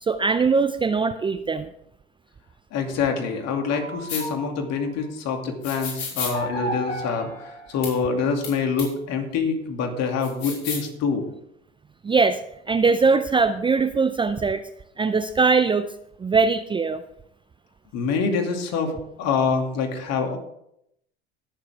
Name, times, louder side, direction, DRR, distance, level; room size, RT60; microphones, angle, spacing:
voice 1, 0.0-1.7 12.0-12.4 12.7-14.6 15.0-15.9 16.2-17.0, right 4 dB, 15° right, 11 dB, 0.5 m, -21 dB
voice 2, 2.7-11.3 17.9-20.4, left 5 dB, 50° left, 4 dB, 2.6 m, -26 dB
sound 1, 2.8-5.1 6.3-8.6, equal, 90° left, 4.7 m, -35 dB
sound 2, 4.1-4.2 5.6-6.3 7.8-7.9 8.4-8.5 8.8-8.9 10.2-10.9, left 5 dB, 70° left, 5.2 m, -31 dB
19.0 x 7.3 x 3.5 m, 0.75 s
hypercardioid pair, 80°, 33 cm